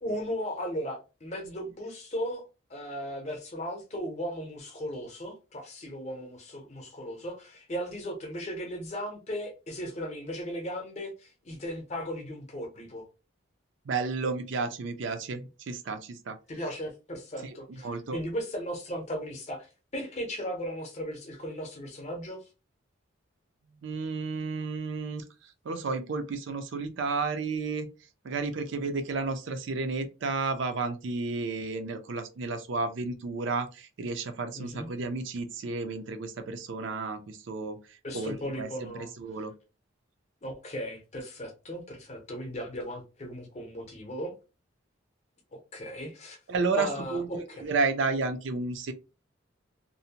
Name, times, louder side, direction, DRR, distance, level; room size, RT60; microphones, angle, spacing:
voice 1, 0.0-13.0 16.5-22.4 34.5-34.9 38.0-39.1 40.4-44.3 45.5-46.4 46.8-47.7, equal, 35° left, 0.6 m, -37 dB
voice 2, 13.9-16.4 17.4-18.2 23.8-27.9 28.2-39.5 46.5-48.9, right 4 dB, 65° right, 0.4 m, -32 dB
2.6 x 2.1 x 2.8 m
head